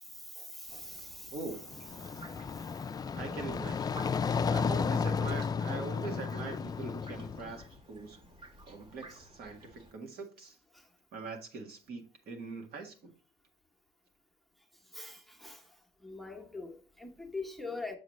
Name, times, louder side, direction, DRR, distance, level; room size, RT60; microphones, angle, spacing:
voice 1, 0.2-1.4 2.0-2.4 9.1-9.2 14.9-15.6 16.0-18.0, left 3 dB, ahead, 1.1 m, -43 dB
sound 1, 0.7-9.9, right 2 dB, 30° right, 1.3 m, -55 dB
voice 2, 1.3-1.6 3.1-4.0 4.5-8.2 8.7-10.6 11.1-13.1, right 4 dB, 65° right, 1.7 m, -42 dB
sound 2, 1.6-7.6, left 5 dB, 25° left, 0.3 m, -33 dB
7.1 x 6.4 x 3.1 m
cardioid pair, 110°, 17 cm